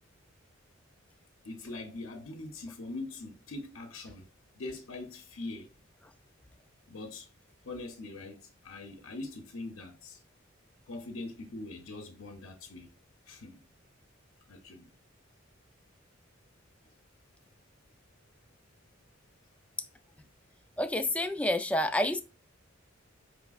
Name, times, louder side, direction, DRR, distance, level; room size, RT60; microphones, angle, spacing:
voice 1, 1.4-4.3 4.6-5.7 6.9-7.3 7.6-10.2 10.9-12.9 13.3-13.6 14.5-14.9, left 2 dB, 85° left, 0.7 m, -42 dB
voice 2, 20.8-22.2, left 1 dB, 5° left, 0.3 m, -28 dB
5.1 x 3.1 x 2.3 m
head